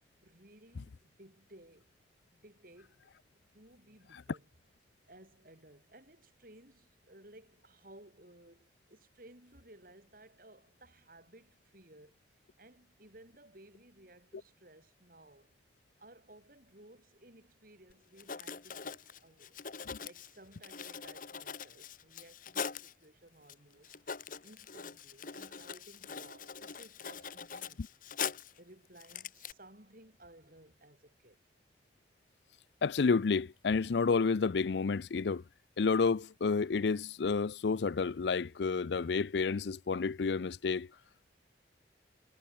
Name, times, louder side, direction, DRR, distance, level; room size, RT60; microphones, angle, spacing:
voice 1, 0.2-1.9 2.4-3.1 3.5-4.5 5.1-12.2 12.6-15.5 16.0-19.5 20.0-23.9 24.4-27.8 28.6-31.4, right 1 dB, 50° right, 7.7 m, -58 dB
Writing, 17.9-18.0 18.2-22.9 23.5-23.6 23.8-28.6 29.0-29.5, left 6 dB, 50° left, 1.3 m, -42 dB
voice 2, 32.8-35.4 35.8-40.9, left 4 dB, 70° left, 0.5 m, -30 dB
head